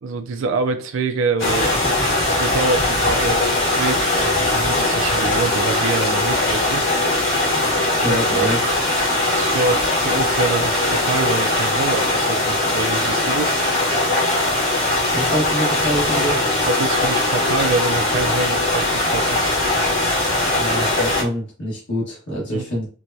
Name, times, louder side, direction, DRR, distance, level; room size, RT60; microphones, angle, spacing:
voice 1, 0.0-1.9 2.3-4.1 4.5-6.8 7.9-8.5 9.3-13.6 16.6-19.6 22.5-22.6, right 3 dB, 85° right, 7 dB, 0.5 m, -25 dB
sound 1, 1.4-21.2, left 1 dB, 80° left, 1.6 m, -20 dB
voice 2, 8.0-8.6 15.1-16.4 20.6-22.9, equal, 60° left, -6 dB, 1.4 m, -25 dB
4.5 x 2.2 x 2.7 m, 0.40 s
head